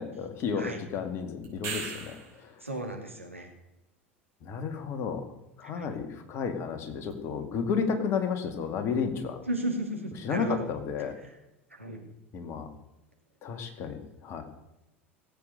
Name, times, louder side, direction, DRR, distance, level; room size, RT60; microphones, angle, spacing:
voice 1, 0.0-2.5 4.4-5.3 5.6-9.4 10.2-11.2 12.3-12.7 13.4-14.4, left 6 dB, 40° left, 6 dB, 2.2 m, -32 dB
sound 1, 1.4-2.4 7.1-7.2, right 5 dB, 45° right, 5.4 m, -37 dB
voice 2, 2.6-3.5 5.8-5.9 9.5-10.7 11.8-12.0, right 1 dB, 90° right, 1 dB, 2.5 m, -34 dB
17.5 x 8.5 x 6.7 m, 0.93 s
figure-of-eight pair, 75°, 7 cm